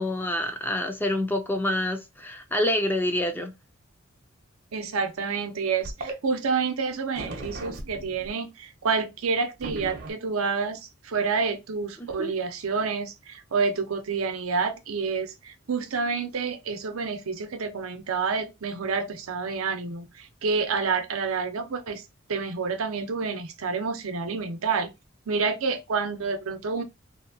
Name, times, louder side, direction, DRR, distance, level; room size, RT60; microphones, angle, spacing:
voice 1, 0.0-3.5 12.0-12.3, left 1 dB, 10° left, 0.4 m, -27 dB
voice 2, 4.7-22.0 22.3-24.9 25.3-26.8, right 5 dB, 85° right, 0.6 m, -28 dB
sound 1, 5.8-6.1 7.1-8.3 9.6-10.1, right 2 dB, 50° right, 0.7 m, -36 dB
2.7 x 2.2 x 2.6 m
head